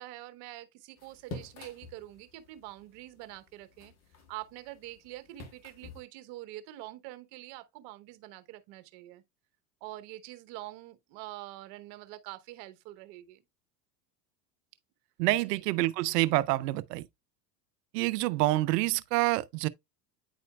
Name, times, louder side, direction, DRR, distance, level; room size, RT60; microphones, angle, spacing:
voice 1, 0.0-3.9 4.3-9.2 9.8-13.4 15.4-15.6, right 16 dB, 55° right, 1.1 m, -45 dB
sound 1, 1.0-6.0, left 3 dB, 30° left, 1.6 m, -49 dB
voice 2, 15.2-17.0 17.9-19.7, right 18 dB, 75° right, 0.7 m, -27 dB
9.5 x 4.3 x 2.3 m
hypercardioid pair, 105°, 49 cm